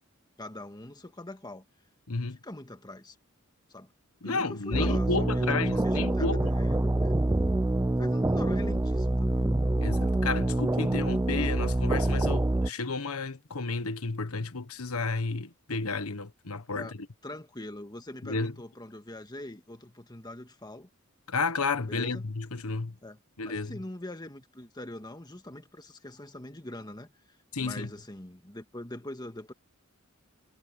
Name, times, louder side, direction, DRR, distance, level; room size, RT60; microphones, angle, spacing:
voice 1, 0.4-1.6 2.4-3.2 3.7-3.9 4.2-7.1 8.0-9.5 16.7-16.9 17.2-20.9 21.9-22.3 23.0-23.2 23.5-27.1 27.6-29.5, left 1 dB, 20° left, 1.8 m, -43 dB
voice 2, 2.1-2.4 4.2-6.5 9.8-17.1 18.2-18.5 21.3-22.9 23.4-23.8 27.5-27.9, left 3 dB, 85° left, 1.4 m, -32 dB
sound 1, 4.7-12.7, right 1 dB, 15° right, 0.4 m, -26 dB
head